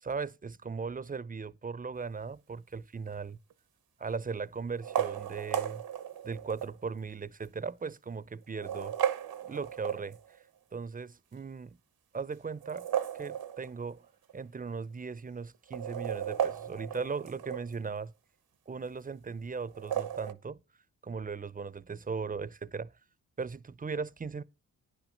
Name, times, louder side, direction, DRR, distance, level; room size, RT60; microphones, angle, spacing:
voice 1, 0.0-3.4 4.0-5.8 6.2-8.9 9.4-10.2 10.7-11.8 12.1-12.9 13.1-14.0 14.3-18.1 18.7-20.6 21.0-22.9 23.4-24.4, right 5 dB, 25° right, 0.6 m, -38 dB
sound 1, 3.1-3.5 4.7-6.8 7.4-7.5 8.4-10.4 12.5-14.0 14.3-14.4 14.6-14.7 15.5-17.8 19.7-20.3, right 9 dB, 85° right, 1.0 m, -35 dB
9.8 x 6.2 x 6.4 m
cardioid pair, 65°, 35 cm